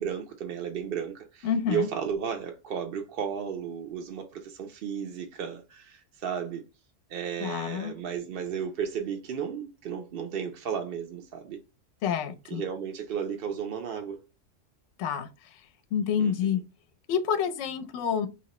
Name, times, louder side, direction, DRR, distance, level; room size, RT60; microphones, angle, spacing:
voice 1, 0.0-6.6 7.1-11.6 12.5-14.2 16.2-16.5, right 7 dB, 60° right, 0.6 m, -34 dB
voice 2, 1.4-1.9 7.4-8.0 12.0-12.6 15.0-16.6 17.1-18.3, left 7 dB, 70° left, 0.9 m, -28 dB
2.9 x 2.8 x 4.0 m
omnidirectional pair, 1.3 m